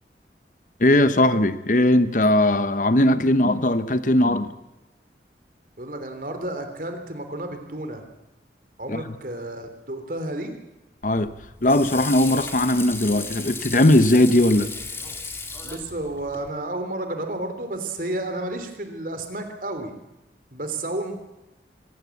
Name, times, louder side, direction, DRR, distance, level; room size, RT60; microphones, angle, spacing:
voice 1, 0.8-4.5 8.9-9.0 11.0-11.3 11.6-14.7, left 1 dB, 45° left, 1.0 m, -19 dB
voice 2, 5.8-8.0 8.8-10.5 15.6-19.9 20.5-21.1, right 1 dB, 50° right, 3.3 m, -31 dB
Water / Sink (filling or washing), 11.0-16.5, left 3 dB, 15° left, 2.1 m, -36 dB
24.0 x 16.5 x 8.4 m
head